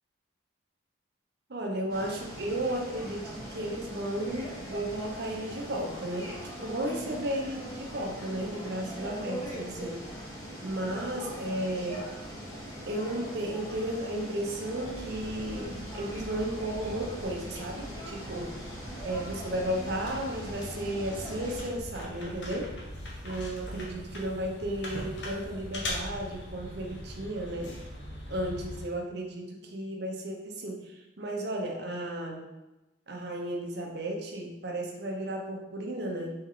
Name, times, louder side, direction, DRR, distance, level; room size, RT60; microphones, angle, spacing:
voice 1, 1.5-10.0 10.6-12.1 12.9-18.5 19.0-22.7 23.2-27.7 28.3-32.4 33.1-36.3, right 1 dB, 55° right, 1 dB, 0.8 m, -34 dB
sound 1, 1.9-21.7, equal, 20° left, 1.2 m, -41 dB
sound 2, 14.8-28.9, left 1 dB, 60° left, 0.9 m, -41 dB
4.3 x 3.2 x 3.7 m, 1.0 s
head